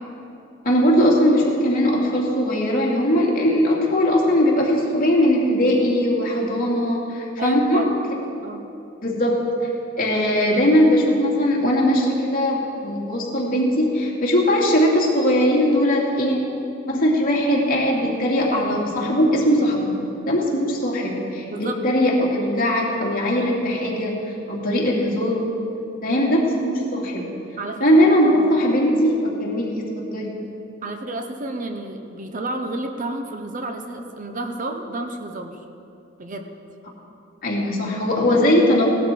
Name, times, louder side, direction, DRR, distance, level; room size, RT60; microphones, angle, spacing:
voice 1, 0.6-7.9 9.0-9.4 10.0-16.4 16.8-25.5 26.0-27.3 27.8-30.4 37.4-38.9, equal, 45° left, -4 dB, 2.8 m, -20 dB
voice 2, 7.4-7.9 8.4-8.6 21.5-21.8 27.6-28.1 30.8-35.6 36.2-36.5, right 2 dB, 40° right, 5 dB, 0.9 m, -30 dB
17.5 x 12.0 x 4.6 m, 2.7 s
head